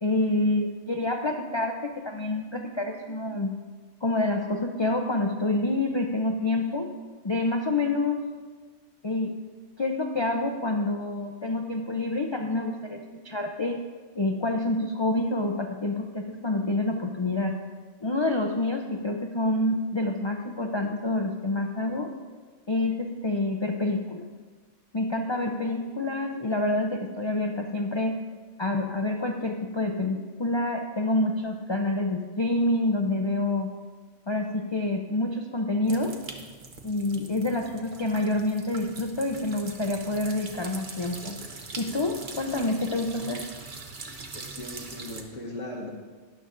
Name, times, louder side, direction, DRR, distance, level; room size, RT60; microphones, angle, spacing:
voice 1, 0.0-3.5 4.0-6.9 7.2-8.3 9.0-9.3 9.8-13.8 14.1-17.6 18.0-22.1 22.7-24.2 24.9-28.2 28.6-33.7 34.3-36.2 36.8-41.4 41.8-43.5, left 2 dB, 40° left, 2 dB, 0.4 m, -27 dB
sound 1, 35.8-45.2, right 3 dB, 45° right, 1.0 m, -42 dB
voice 2, 44.3-45.9, left 1 dB, 80° left, -4 dB, 1.5 m, -38 dB
12.5 x 10.5 x 2.5 m, 1.4 s
omnidirectional pair, 1.3 m